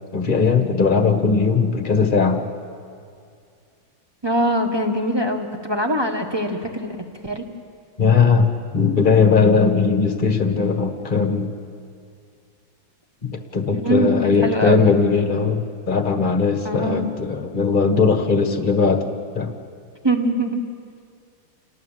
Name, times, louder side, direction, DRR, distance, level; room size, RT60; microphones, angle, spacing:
voice 1, 0.1-2.4 8.0-11.5 13.2-15.6 15.9-19.5, left 5 dB, 25° left, 6 dB, 1.3 m, -19 dB
voice 2, 4.2-7.0 7.2-7.4 13.7-14.9 16.6-17.1 20.0-20.6, right 1 dB, 15° right, 4 dB, 1.2 m, -22 dB
28.5 x 18.5 x 7.4 m, 2.3 s
omnidirectional pair, 2.4 m